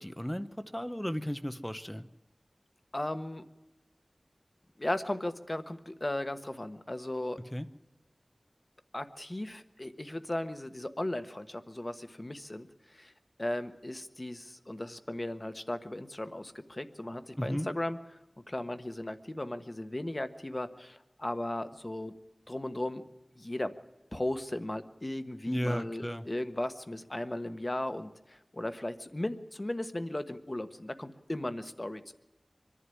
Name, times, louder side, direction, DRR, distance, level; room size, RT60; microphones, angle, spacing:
voice 1, 0.0-2.1 7.5-7.7 17.4-17.7 25.5-26.2, equal, 10° left, 10 dB, 0.8 m, -34 dB
voice 2, 2.9-3.4 4.8-7.4 8.9-13.1 13.4-18.0 18.5-22.1 22.5-23.0 23.4-23.7 24.1-32.1, left 1 dB, 35° left, 9 dB, 1.3 m, -36 dB
24.0 x 11.5 x 9.8 m, 0.97 s
wide cardioid pair, 60°, 0 cm